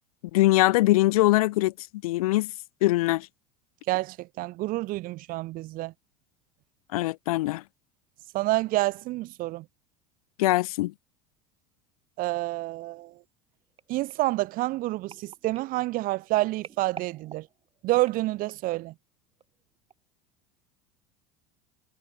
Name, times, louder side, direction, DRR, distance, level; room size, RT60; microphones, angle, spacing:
voice 1, 0.3-1.7 2.0-2.5 2.8-3.3 6.9-7.6 10.4-10.9, left 18 dB, 80° left, 1.7 m, -22 dB
voice 2, 3.9-5.9 8.3-9.7 12.2-13.1 13.9-17.5 17.8-18.9, right 18 dB, 50° right, 0.7 m, -28 dB
sound 1, 13.8-18.8 19.4-19.6 19.9-20.0, right 7 dB, 30° right, 4.1 m, -49 dB
hypercardioid pair, 90°, 18 cm